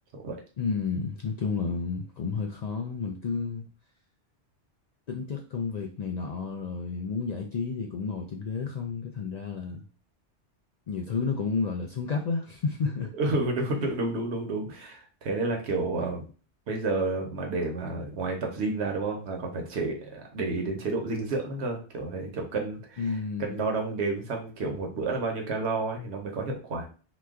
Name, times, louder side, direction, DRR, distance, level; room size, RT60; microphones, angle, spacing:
voice 1, 0.6-3.7 5.1-9.8 10.9-13.1 23.0-23.7, left 5 dB, 60° left, 1 dB, 0.4 m, -31 dB
voice 2, 13.1-16.3 16.7-26.9, right 3 dB, 75° right, 2 dB, 1.1 m, -30 dB
3.0 x 2.2 x 3.5 m, 0.37 s
omnidirectional pair, 1.1 m